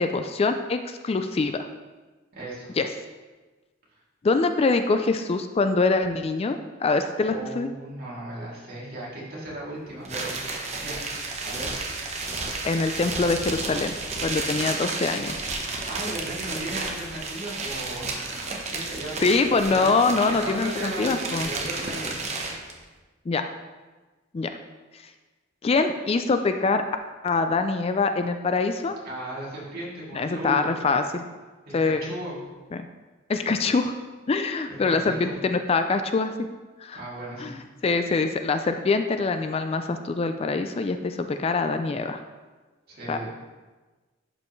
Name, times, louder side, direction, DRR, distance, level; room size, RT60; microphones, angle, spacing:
voice 1, 0.0-1.7 2.8-2.9 4.2-7.7 12.6-13.9 14.2-15.5 19.2-21.5 23.3-23.4 24.3-24.5 25.6-26.8 27.2-29.0 30.1-31.2 31.7-32.1 32.7-32.9 33.3-33.9 34.3-36.3 36.8-37.0 37.4-37.6 37.8-42.2 43.1-43.2, left 3 dB, 30° left, 8 dB, 0.3 m, -24 dB
voice 2, 2.3-2.7 3.9-4.0 7.2-10.4 10.8-11.0 11.4-11.7 15.7-19.4 19.7-22.2 29.0-30.7 31.7-32.4 34.7-35.3 36.9-37.5 42.9-43.3, right 1 dB, 50° right, -7 dB, 2.7 m, -36 dB
sound 1, 10.0-22.7, right 3 dB, 35° right, 1.0 m, -32 dB
11.5 x 5.4 x 3.1 m, 1.3 s
head